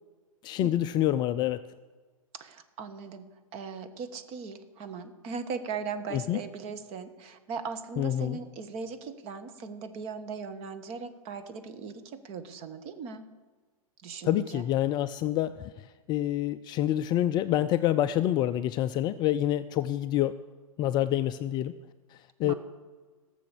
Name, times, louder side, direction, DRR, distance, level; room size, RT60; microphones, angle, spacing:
voice 1, 0.4-1.6 6.1-6.4 8.0-8.4 14.2-15.7 16.1-20.4 20.8-21.7 22.4-22.5, left 12 dB, 25° left, 11 dB, 0.4 m, -27 dB
voice 2, 2.4-13.2 14.0-14.6 22.4-22.5, right 5 dB, 35° right, 9 dB, 1.3 m, -39 dB
16.5 x 7.0 x 6.8 m, 1.4 s
hypercardioid pair, 110°, 18 cm